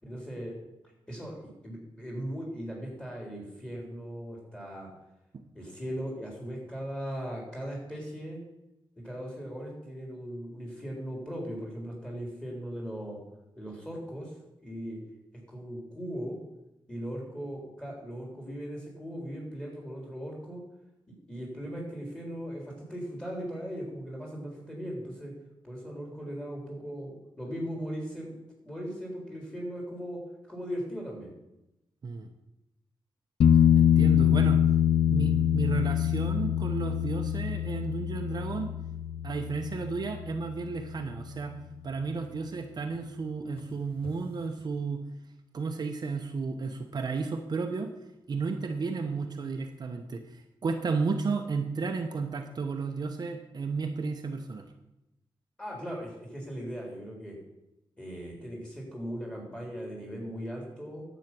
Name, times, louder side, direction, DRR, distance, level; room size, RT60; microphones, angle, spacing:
voice 1, 0.0-0.6 1.1-4.9 5.5-8.4 9.0-13.2 13.5-14.3 14.6-15.0 15.5-16.4 16.9-20.6 21.1-25.3 25.6-28.4 28.6-30.2 30.5-31.3 55.6-57.4 58.0-61.0, equal, 10° left, -2 dB, 3.6 m, -38 dB
sound 1, 33.4-41.0 44.1-44.2, left 10 dB, 85° left, 0.6 m, -25 dB
voice 2, 33.8-34.6 35.1-38.7 39.2-41.5 41.8-45.0 45.5-47.9 48.3-54.7, right 4 dB, 45° right, 4 dB, 0.8 m, -33 dB
10.5 x 8.2 x 6.1 m, 0.92 s
wide cardioid pair, 155°, 9 cm